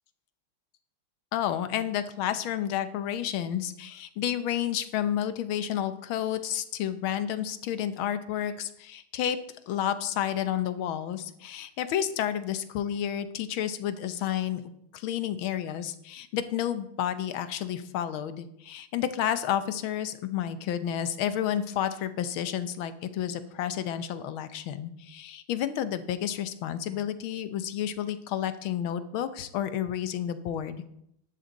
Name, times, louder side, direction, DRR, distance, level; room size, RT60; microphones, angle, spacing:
voice 1, 1.3-9.4 9.7-30.9, left 10 dB, 75° left, 11 dB, 1.6 m, -31 dB
12.5 x 10.5 x 4.0 m, 0.76 s
omnidirectional pair, 2.3 m